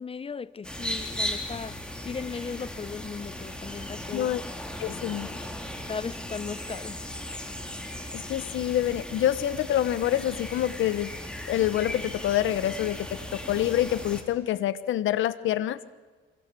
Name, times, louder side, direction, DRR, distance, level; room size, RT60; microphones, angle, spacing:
voice 1, 0.0-4.3 4.8-5.0 5.9-7.0, left 5 dB, 30° left, 0.8 m, -37 dB
sound 1, 0.6-14.2, left 1 dB, 5° left, 4.3 m, -37 dB
voice 2, 4.8-5.3 8.1-11.1 11.5-15.9, left 12 dB, 80° left, 1.1 m, -27 dB
27.0 x 22.0 x 6.9 m
cardioid pair, 90°, 20 cm